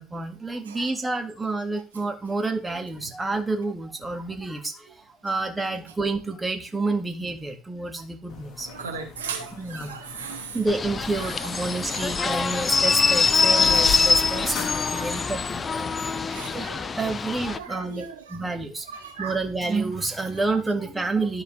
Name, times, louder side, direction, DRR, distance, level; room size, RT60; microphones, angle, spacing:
voice 1, 0.0-8.7 9.6-10.0 10.5-16.2 16.5-16.7 17.0-18.0 18.3-18.9 19.2-21.4, right 3 dB, 15° right, 2.0 m, -29 dB
sound 1, 8.3-16.0, left 6 dB, 50° left, 1.7 m, -39 dB
voice 2, 8.7-10.6 11.2-12.4 14.9-15.1 16.1-16.9 17.6-18.4 18.9-19.4, right 6 dB, 85° right, 1.5 m, -38 dB
sound 2, 10.7-17.6, left 4 dB, 30° left, 0.6 m, -24 dB
12.5 x 4.8 x 3.3 m
hypercardioid pair, 65°, 0 cm